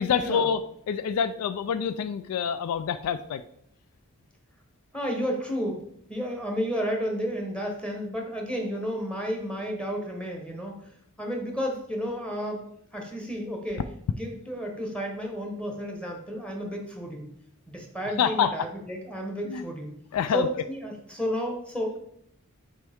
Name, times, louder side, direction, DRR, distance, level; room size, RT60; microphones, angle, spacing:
voice 1, 0.0-3.4 18.0-18.5 19.5-19.6 20.1-20.5, left 7 dB, 75° left, 13 dB, 0.3 m, -27 dB
voice 2, 4.9-5.8 6.1-10.9 11.2-13.8 14.2-17.3 17.7-19.9 20.3-22.0, equal, 5° left, 1 dB, 1.0 m, -32 dB
6.1 x 4.4 x 3.5 m, 0.70 s
head